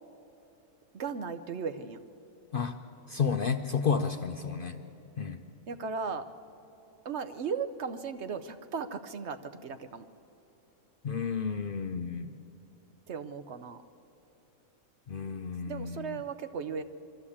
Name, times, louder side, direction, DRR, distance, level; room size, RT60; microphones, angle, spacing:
voice 1, 0.9-2.0 5.7-6.3 7.0-10.1 13.1-13.8 15.7-16.8, right 5 dB, 60° right, 10 dB, 0.9 m, -36 dB
voice 2, 3.1-4.8 5.2-5.4 11.0-12.3 15.1-16.2, left 6 dB, 55° left, 6 dB, 0.6 m, -31 dB
23.0 x 13.5 x 8.5 m, 3.0 s
omnidirectional pair, 1.5 m